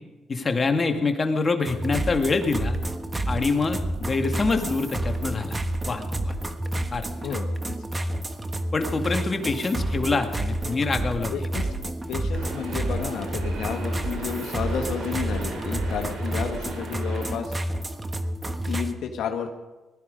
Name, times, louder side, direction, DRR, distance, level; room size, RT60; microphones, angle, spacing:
voice 1, 0.3-2.7 3.3-5.6 5.9-6.3 6.9-7.1 8.7-11.5, left 3 dB, 35° left, 5 dB, 1.9 m, -25 dB
sound 1, 1.6-18.9, right 1 dB, 20° right, 1.2 m, -29 dB
voice 2, 7.2-7.5 11.3-17.5 18.7-19.5, left 7 dB, 75° left, 4 dB, 1.5 m, -32 dB
sound 2, 12.3-17.3, right 2 dB, 90° right, 4.5 m, -38 dB
19.5 x 13.0 x 5.2 m, 1.1 s
cardioid pair, 90°, 0 cm